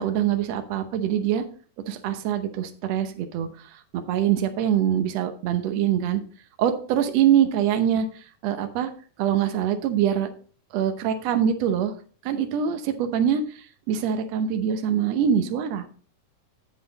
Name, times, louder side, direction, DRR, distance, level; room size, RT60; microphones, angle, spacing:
voice 1, 0.0-1.4 1.8-6.2 6.6-8.1 8.4-8.9 9.2-10.3 10.7-11.9 12.2-15.8, right 9 dB, 70° right, 7 dB, 1.6 m, -24 dB
7.9 x 7.5 x 4.0 m, 0.42 s
omnidirectional pair, 4.1 m